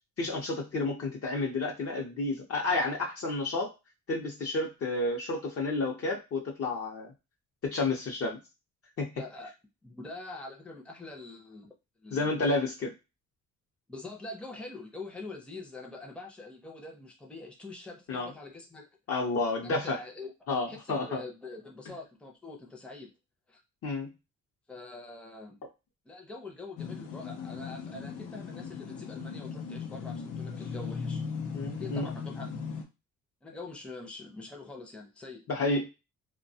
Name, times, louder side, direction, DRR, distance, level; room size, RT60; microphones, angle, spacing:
voice 1, 0.2-3.7 4.1-7.1 7.6-8.4 9.0-9.1 12.1-12.9 18.1-18.3 19.1-20.0 20.5-21.2 23.8-24.1 31.5-32.1 35.5-35.9, left 2 dB, 50° left, -1 dB, 0.7 m, -30 dB
voice 2, 9.2-9.5 9.8-11.7 12.0-12.5 13.9-18.9 19.6-20.3 20.7-23.1 23.5-23.6 24.7-25.6 26.1-31.2 31.8-32.5 33.4-35.4, left 3 dB, 5° left, 1 dB, 0.5 m, -44 dB
sound 1, 26.8-32.8, left 5 dB, 90° left, 0.6 m, -38 dB
2.2 x 2.2 x 2.7 m, 0.26 s
cardioid pair, 90°, 30 cm